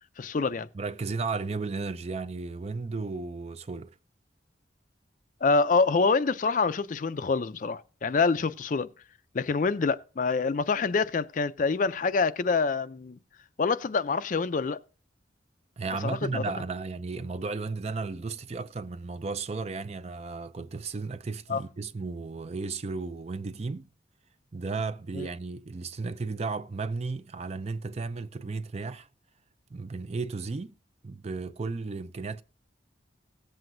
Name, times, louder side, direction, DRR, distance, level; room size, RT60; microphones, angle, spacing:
voice 1, 0.2-0.7 5.4-8.9 9.3-13.2 13.6-14.8 16.0-16.4 21.5-21.6 25.1-25.3, left 4 dB, 45° left, 0.4 m, -26 dB
voice 2, 0.7-4.0 15.8-23.9 24.5-29.1 29.7-30.7 31.0-32.4, right 4 dB, 35° right, 0.4 m, -34 dB
17.5 x 7.7 x 2.6 m
head